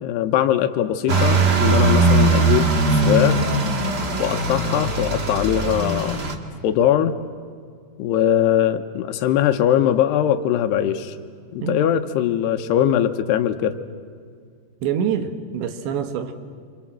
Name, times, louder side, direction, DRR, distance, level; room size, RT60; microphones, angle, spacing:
voice 1, 0.0-3.4 4.2-6.2 6.6-7.2 8.0-11.2 11.5-13.8, left 10 dB, 75° left, 9 dB, 2.9 m, -21 dB
sound 1, 1.1-6.3, right 3 dB, 45° right, 1.4 m, -20 dB
voice 2, 14.8-16.3, right 8 dB, 85° right, 8 dB, 3.7 m, -25 dB
28.0 x 26.5 x 7.5 m, 2.1 s
omnidirectional pair, 5.0 m